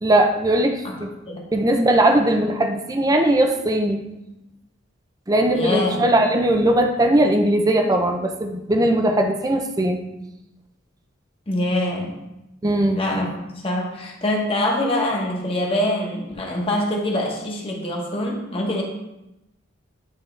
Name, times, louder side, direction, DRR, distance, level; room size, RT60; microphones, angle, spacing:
voice 1, 0.0-1.1 1.5-4.0 5.3-10.0 12.6-13.0, right 1 dB, 20° right, 5 dB, 0.5 m, -19 dB
voice 2, 5.5-6.0 11.5-12.2 13.0-18.8, left 1 dB, 30° left, -1 dB, 1.2 m, -24 dB
10.5 x 3.5 x 3.2 m, 0.91 s
head